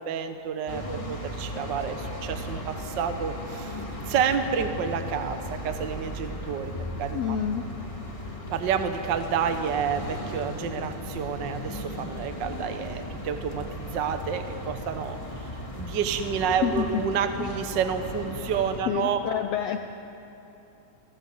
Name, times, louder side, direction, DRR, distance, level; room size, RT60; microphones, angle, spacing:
voice 1, 0.0-6.7 7.0-7.4 8.5-15.5 15.8-19.2, right 7 dB, 65° right, 7 dB, 1.1 m, -29 dB
sound 1, 0.7-18.8, equal, 10° left, 1.8 m, -36 dB
voice 2, 7.1-7.6 16.6-16.9 17.4-17.5 18.9-19.8, left 9 dB, 75° left, 7 dB, 1.5 m, -28 dB
29.5 x 18.0 x 7.9 m, 3.0 s
omnidirectional pair, 3.7 m